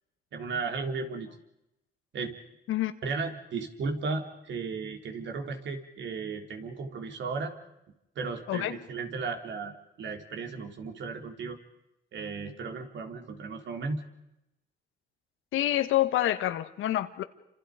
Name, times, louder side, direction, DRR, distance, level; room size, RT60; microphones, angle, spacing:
voice 1, 0.3-1.4 2.1-2.4 3.0-7.5 8.2-11.6 12.1-14.1, right 4 dB, 65° right, 4 dB, 3.7 m, -35 dB
voice 2, 15.5-17.2, left 13 dB, 85° left, 10 dB, 1.6 m, -27 dB
29.0 x 26.5 x 5.1 m, 0.89 s
cardioid pair, 90°, 20 cm